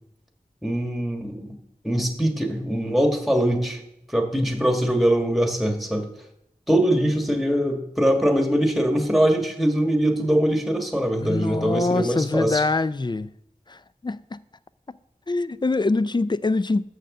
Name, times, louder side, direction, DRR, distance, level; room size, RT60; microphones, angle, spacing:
voice 1, 0.6-1.5 1.8-3.8 4.1-6.1 6.7-12.6, right 1 dB, ahead, 1.4 m, -22 dB
voice 2, 11.2-13.3 14.0-14.2 15.3-16.8, left 3 dB, 30° left, 0.3 m, -24 dB
6.7 x 6.6 x 6.4 m
wide cardioid pair, 50°, 15 cm